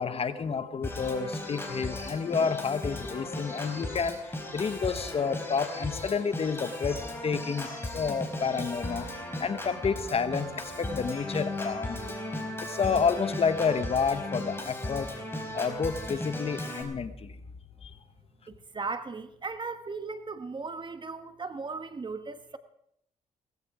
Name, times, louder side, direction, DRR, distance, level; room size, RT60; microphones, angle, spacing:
voice 1, 0.0-7.0 7.2-9.1 9.4-12.1 12.6-15.1 15.5-17.4 17.8-17.9, left 5 dB, 45° left, 1.1 m, -30 dB
Organ, 0.8-16.8, left 1 dB, 15° left, 4.3 m, -36 dB
voice 2, 18.5-22.6, right 4 dB, 35° right, 1.5 m, -37 dB
17.0 x 15.5 x 5.0 m
cardioid pair, 85°, 14 cm